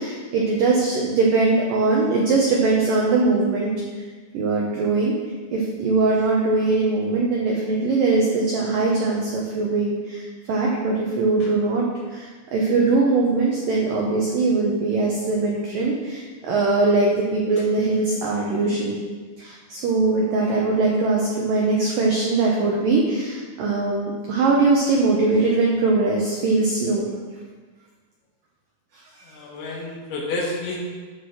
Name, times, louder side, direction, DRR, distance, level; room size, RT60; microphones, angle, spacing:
voice 1, 0.0-3.7 4.3-5.1 5.5-19.0 19.4-27.1, right 3 dB, 75° right, -3 dB, 2.1 m, -21 dB
voice 2, 29.3-30.8, left 2 dB, 80° left, -3 dB, 3.6 m, -30 dB
11.0 x 4.7 x 6.4 m, 1.4 s
omnidirectional pair, 5.3 m